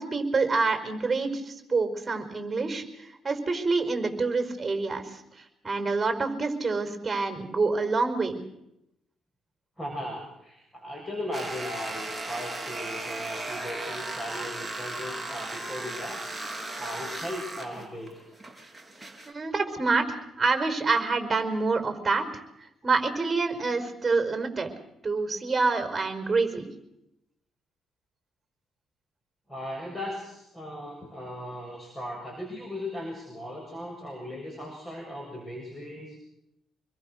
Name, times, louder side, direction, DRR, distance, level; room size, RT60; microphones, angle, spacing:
voice 1, 0.0-8.4 19.3-22.2 22.8-24.7 25.0-26.7, right 4 dB, 25° right, 7 dB, 4.9 m, -27 dB
voice 2, 9.8-16.2 16.8-18.2 29.5-36.2, left 1 dB, 15° left, 0 dB, 7.2 m, -37 dB
sound 1, 11.3-19.3, right 2 dB, 5° right, 4.6 m, -36 dB
26.5 x 22.0 x 6.5 m, 0.82 s
cardioid pair, 90°, 0 cm